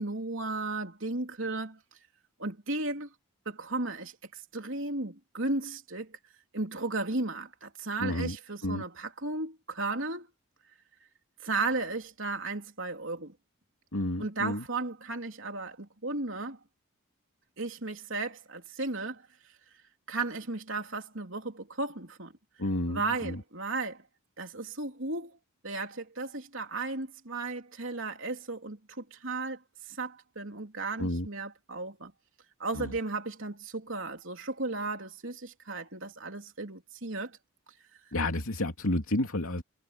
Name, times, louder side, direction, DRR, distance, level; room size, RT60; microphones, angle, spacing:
voice 1, 0.0-1.8 2.4-3.1 3.5-6.2 6.5-10.3 11.4-13.3 14.2-16.6 17.6-19.3 20.1-22.3 22.9-24.0 24.4-25.4 25.6-29.6 29.9-32.1 32.6-37.4, right 3 dB, 60° right, 3.6 m, -35 dB
voice 2, 8.0-8.4 8.6-8.8 13.9-14.7 22.6-23.4 31.0-31.3 32.7-32.9 38.1-39.6, left 1 dB, 75° left, 2.7 m, -31 dB
head